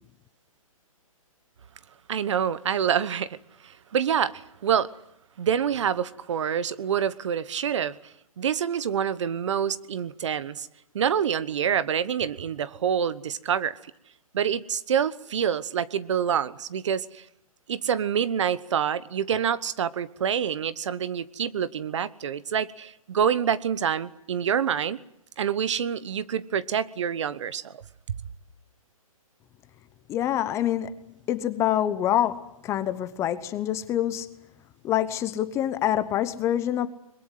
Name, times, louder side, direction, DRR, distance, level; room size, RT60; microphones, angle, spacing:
voice 1, 2.1-3.4 3.6-4.9 5.4-8.0 8.4-10.7 10.9-13.8 14.3-17.2 17.7-25.0 25.4-27.8, right 8 dB, 55° right, 1.1 m, -26 dB
voice 2, 30.1-31.0 31.3-34.4 34.8-36.9, left 11 dB, 15° left, 0.9 m, -26 dB
23.0 x 21.5 x 9.8 m
hypercardioid pair, 150°, 18 cm